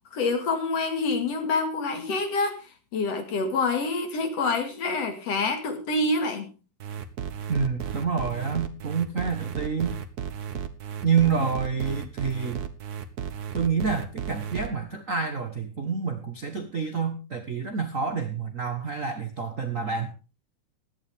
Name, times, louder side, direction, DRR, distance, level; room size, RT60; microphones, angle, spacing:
voice 1, 0.1-2.6 2.9-6.5, left 3 dB, 55° left, 6 dB, 3.0 m, -26 dB
sound 1, 6.8-14.7, right 8 dB, 85° right, 0.8 m, -34 dB
voice 2, 7.5-9.9 11.0-12.7 13.5-20.1, right 5 dB, 45° right, 7 dB, 1.0 m, -28 dB
17.0 x 11.5 x 3.6 m, 0.32 s
omnidirectional pair, 3.5 m